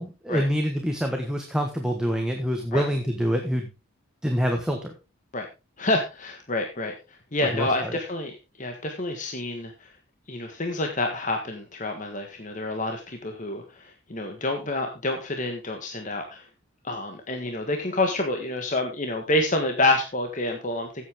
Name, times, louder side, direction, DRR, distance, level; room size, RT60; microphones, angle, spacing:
voice 1, 0.0-3.7 4.2-4.9 7.5-7.9, equal, 5° right, 3 dB, 1.3 m, -26 dB
voice 2, 5.8-9.9 10.3-16.4 16.8-21.0, left 2 dB, 35° left, 4 dB, 1.6 m, -28 dB
14.5 x 8.3 x 3.6 m, 0.28 s
head